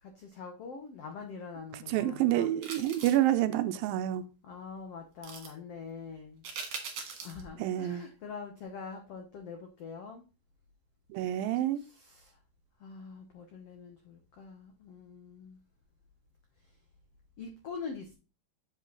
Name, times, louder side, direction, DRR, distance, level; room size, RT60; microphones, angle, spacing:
voice 1, 0.0-2.6 4.4-6.4 7.2-10.2 11.7-12.4 12.8-15.6 17.4-18.1, left 5 dB, 80° left, 1.3 m, -44 dB
voice 2, 1.9-4.2 7.6-8.0 11.1-11.8, right 13 dB, 80° right, 2.2 m, -28 dB
sound 1, 2.6-3.3 5.2-5.5 6.4-7.4 7.8-7.9, right 5 dB, 65° right, 2.9 m, -41 dB
7.8 x 5.2 x 3.9 m
omnidirectional pair, 4.4 m